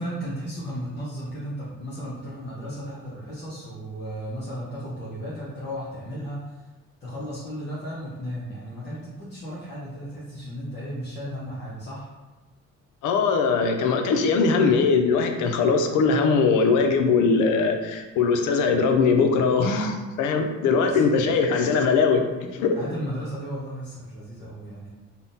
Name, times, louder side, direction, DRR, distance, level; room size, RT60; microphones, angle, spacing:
voice 1, 0.0-6.6 7.0-12.1 20.8-21.1 22.7-24.9, equal, 35° left, -8 dB, 0.8 m, -35 dB
voice 2, 13.0-22.2 22.5-22.8, left 4 dB, 85° left, 5 dB, 0.4 m, -21 dB
3.5 x 2.1 x 2.6 m, 1.2 s
cardioid pair, 90°, 30 cm